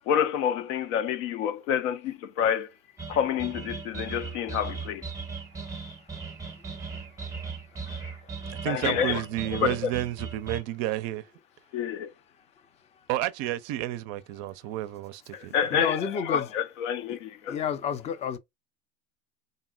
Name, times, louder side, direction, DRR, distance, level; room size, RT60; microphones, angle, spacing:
voice 1, 0.1-2.7 3.1-5.0 8.6-9.2 9.6-9.9 11.7-12.1 15.3-17.5, left 8 dB, 75° left, 0.6 m, -28 dB
sound 1, 3.0-10.6, right 5 dB, 10° right, 0.7 m, -38 dB
voice 2, 8.5-11.3 13.1-15.8, right 14 dB, 45° right, 0.4 m, -31 dB
voice 3, 15.7-16.5 17.1-17.2 17.5-18.4, left 7 dB, 20° left, 0.3 m, -30 dB
3.8 x 2.0 x 2.3 m
supercardioid pair, 115°, 38 cm